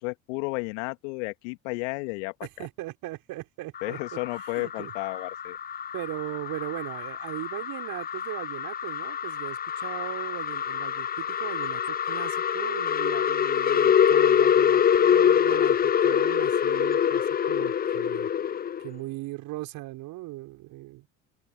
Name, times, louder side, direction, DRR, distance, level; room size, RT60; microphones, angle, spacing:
voice 1, 0.0-2.3 3.8-5.6, left 30 dB, 65° left, 2.6 m, -32 dB
voice 2, 2.4-4.9 5.9-18.3 18.8-21.1, right 18 dB, 60° right, 4.9 m, -38 dB
sound 1, 3.7-18.9, left 8 dB, 25° left, 0.7 m, -25 dB
open air
figure-of-eight pair, 60°, 39 cm